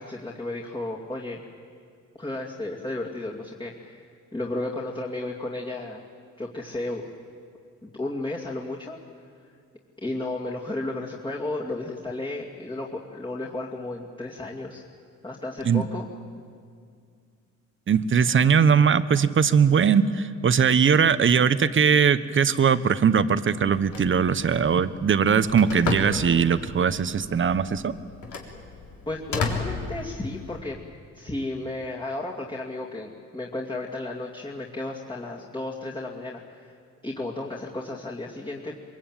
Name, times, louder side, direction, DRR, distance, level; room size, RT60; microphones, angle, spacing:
voice 1, 0.0-1.4 2.2-6.0 6.4-7.1 7.8-9.0 10.0-14.8 15.2-16.1 29.1-30.8 31.1-36.7 37.0-38.7, left 2 dB, 15° left, -2 dB, 2.6 m, -33 dB
voice 2, 17.9-27.9, right 6 dB, 40° right, 13 dB, 1.1 m, -20 dB
Telephone, 23.6-30.6, left 4 dB, 75° left, 3.9 m, -34 dB
23.0 x 23.0 x 9.1 m, 2.3 s
cardioid pair, 90°, 30 cm